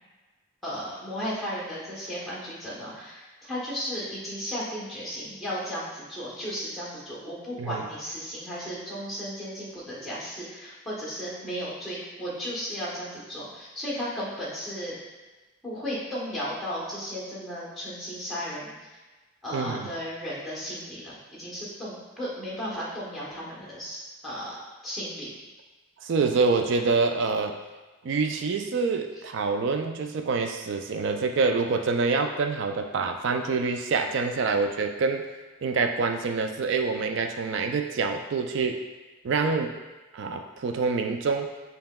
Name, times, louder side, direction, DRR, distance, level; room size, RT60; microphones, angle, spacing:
voice 1, 0.6-14.9 15.6-18.8 19.4-24.6 24.8-25.3, equal, ahead, -8 dB, 1.0 m, -35 dB
voice 2, 19.5-19.9 26.0-27.6 28.0-35.3 35.6-38.8 39.2-39.7 40.1-41.5, right 4 dB, 55° right, 5 dB, 0.3 m, -26 dB
5.5 x 2.9 x 2.2 m, 1.2 s
head